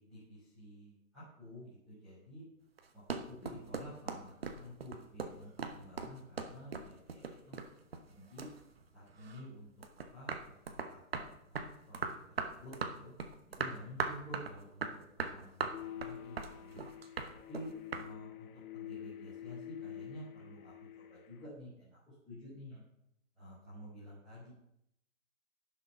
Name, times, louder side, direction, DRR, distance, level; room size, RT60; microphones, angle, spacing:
voice 1, 0.0-2.4 2.9-7.7 8.1-8.5 8.9-9.7 10.1-13.1 13.5-16.8 17.5-17.7 17.9-22.8 23.3-24.5, equal, ahead, -22 dB, 0.8 m, -51 dB
sound 1, 2.8-8.1 8.4-9.5 9.8-18.1, right 5 dB, 45° right, 1.0 m, -40 dB
sound 2, 15.7-21.5, left 11 dB, 75° left, 0.7 m, -48 dB
11.5 x 6.7 x 5.6 m, 0.77 s
hypercardioid pair, 180°, 43 cm